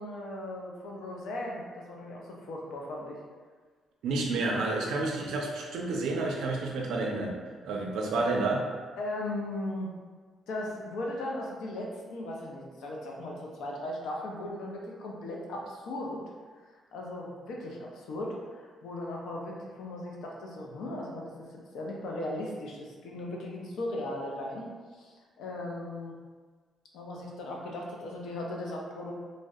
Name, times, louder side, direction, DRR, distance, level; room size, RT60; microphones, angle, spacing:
voice 1, 0.0-3.2 9.0-9.9 10.5-16.2 16.9-21.3 21.7-26.1 26.9-29.1, left 1 dB, 80° left, -1 dB, 0.4 m, -37 dB
voice 2, 4.0-8.6, right 3 dB, 80° right, 0 dB, 0.4 m, -30 dB
2.6 x 2.0 x 2.3 m, 1.5 s
cardioid pair, 150°, 0 cm